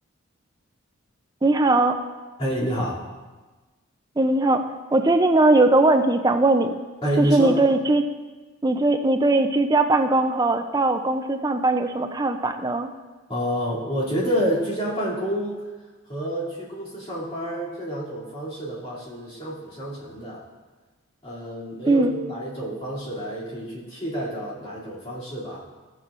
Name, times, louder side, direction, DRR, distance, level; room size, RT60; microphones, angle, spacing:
voice 1, 1.4-2.0 4.2-6.8 7.2-8.0 8.6-12.9 21.9-22.1, right 2 dB, 20° right, 7 dB, 0.4 m, -20 dB
voice 2, 2.4-3.0 7.0-7.6 13.3-15.6 16.1-20.4 21.2-25.6, equal, 30° left, -9 dB, 2.7 m, -28 dB
13.0 x 8.2 x 2.5 m, 1.3 s
head